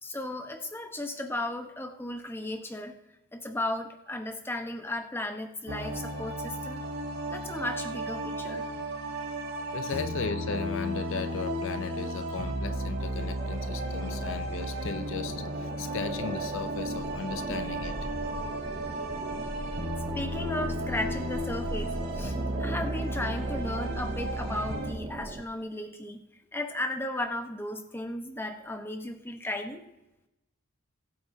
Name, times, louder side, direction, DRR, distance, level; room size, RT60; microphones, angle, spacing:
voice 1, 0.0-3.0 3.3-6.8 7.3-8.6 20.1-26.2 26.5-29.8, left 1 dB, 10° left, 0.9 m, -35 dB
sound 1, 5.7-24.9, right 1 dB, 70° right, 3.5 m, -34 dB
voice 2, 9.7-18.0, left 5 dB, 60° left, 0.5 m, -36 dB
sound 2, 13.4-25.4, right 2 dB, 25° right, 0.5 m, -39 dB
20.0 x 8.5 x 2.7 m
head